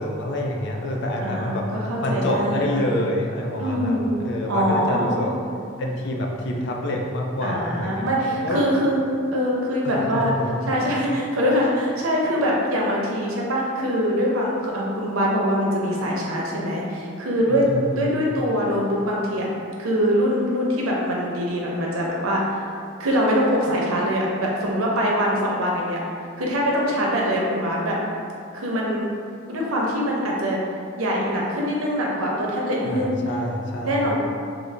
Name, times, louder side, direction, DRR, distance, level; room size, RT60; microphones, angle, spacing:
voice 1, 0.0-5.3 5.8-8.6 9.8-10.6 17.5-18.2 32.8-34.0, left 1 dB, 60° left, 0 dB, 0.4 m, -27 dB
voice 2, 1.2-2.7 3.6-4.1 4.5-5.3 7.4-9.0 9.3-10.3 10.7-17.7 17.9-19.5 19.8-22.6 23.0-26.0 26.4-28.0 28.5-29.1 29.5-30.6 31.0-33.2 33.8-34.2, equal, 90° right, -3 dB, 0.7 m, -23 dB
3.8 x 2.0 x 3.2 m, 2.3 s
head